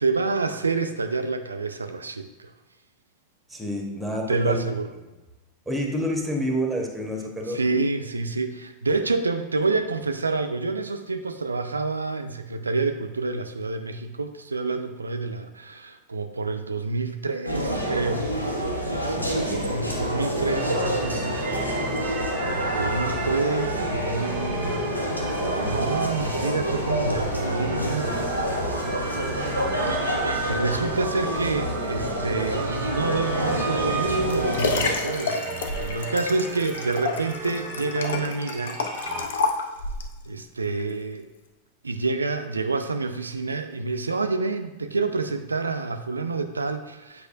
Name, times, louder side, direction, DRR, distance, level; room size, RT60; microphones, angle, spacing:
voice 1, 0.0-2.5 4.3-4.9 7.5-18.4 18.9-21.5 22.6-24.8 25.6-28.2 29.3-29.7 30.5-35.5 35.8-38.8 40.3-41.3 41.8-47.3, right 3 dB, 75° right, 7 dB, 0.3 m, -28 dB
voice 2, 3.5-4.6 5.7-7.6 19.1-19.9 29.6-29.8, equal, ahead, 1 dB, 1.1 m, -29 dB
sound 1, 17.4-34.9, equal, 90° left, 0.9 m, -27 dB
sound 2, 20.5-39.3, right 4 dB, 25° right, 0.7 m, -35 dB
Liquid, 33.9-40.2 40.8-40.9, left 4 dB, 60° left, 0.6 m, -29 dB
8.3 x 4.8 x 2.5 m, 1.1 s
figure-of-eight pair, 90°, 0 cm